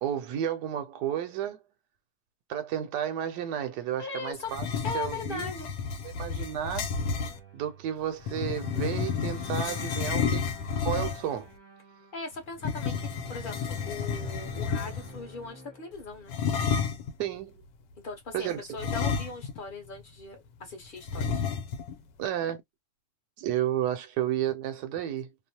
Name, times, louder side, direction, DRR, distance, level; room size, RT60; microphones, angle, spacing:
voice 1, 0.0-1.6 2.5-4.7 4.9-5.5 6.0-6.9 7.5-10.5 10.8-11.5 17.2-17.5 18.3-18.7 22.2-22.6 23.4-25.3, right 10 dB, 75° right, 1.1 m, -32 dB
voice 2, 4.0-4.5 4.8-5.7 12.1-16.3 18.0-21.4, left 3 dB, 40° left, 0.9 m, -39 dB
sound 1, 4.5-7.4 8.2-11.4 12.6-15.2 16.3-17.1 18.8-19.7 20.0-20.1 21.1-21.9, left 6 dB, 75° left, 1.2 m, -31 dB
sound 2, 6.9-16.1, right 1 dB, 25° right, 0.5 m, -49 dB
3.0 x 2.0 x 2.7 m
omnidirectional pair, 1.9 m